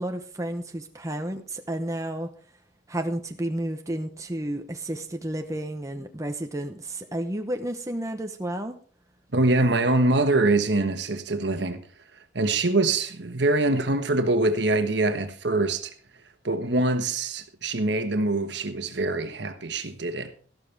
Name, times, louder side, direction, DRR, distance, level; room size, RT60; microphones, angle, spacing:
voice 1, 0.0-2.3 2.9-8.8, right 1 dB, 15° right, 0.9 m, -31 dB
voice 2, 9.3-11.8 12.3-15.9 16.4-20.3, right 2 dB, 65° right, 1.3 m, -24 dB
13.5 x 12.5 x 3.5 m
head